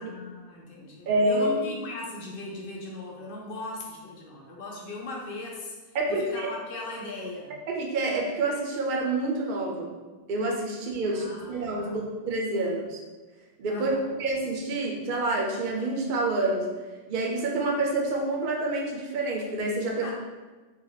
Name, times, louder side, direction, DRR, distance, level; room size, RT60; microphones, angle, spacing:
voice 1, 0.0-7.5 11.0-12.0 13.7-14.1 19.8-20.1, left 2 dB, 60° left, -1 dB, 0.9 m, -39 dB
voice 2, 1.1-1.5 5.9-6.5 7.7-9.9 10.3-13.0 13.6-16.7 17.1-20.0, right 2 dB, 60° right, 0 dB, 0.7 m, -28 dB
3.2 x 2.2 x 3.8 m, 1.3 s
omnidirectional pair, 1.0 m